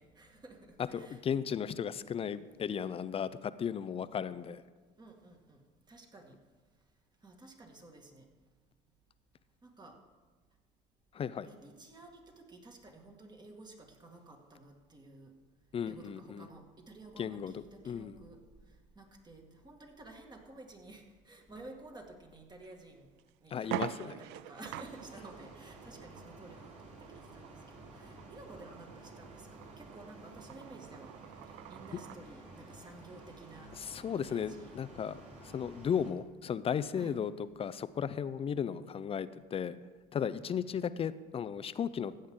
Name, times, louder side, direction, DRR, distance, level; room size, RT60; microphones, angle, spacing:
voice 1, 0.0-1.4 2.2-2.4 2.6-2.7 5.0-5.6 5.9-6.4 7.2-8.3 9.6-10.0 11.4-15.3 15.9-18.4 19.0-23.1 23.4-26.9 27.3-27.5 27.9-31.2 31.7-33.7 34.2-34.8 36.9-37.2 40.2-40.6, right 2 dB, 25° right, 2 dB, 2.1 m, -53 dB
voice 2, 0.9-4.6 11.1-11.5 15.7-16.5 17.2-18.2 23.5-24.1 31.9-32.0 33.8-35.2 35.4-39.8 40.1-42.1, left 7 dB, 30° left, 15 dB, 0.5 m, -35 dB
sound 1, 22.6-22.8 23.2-23.3 23.6-32.3, right 15 dB, 70° right, 0.4 m, -46 dB
sound 2, 24.6-36.1, right 2 dB, 40° right, 3.7 m, -53 dB
15.0 x 8.7 x 3.7 m, 1.3 s
supercardioid pair, 85°, 18 cm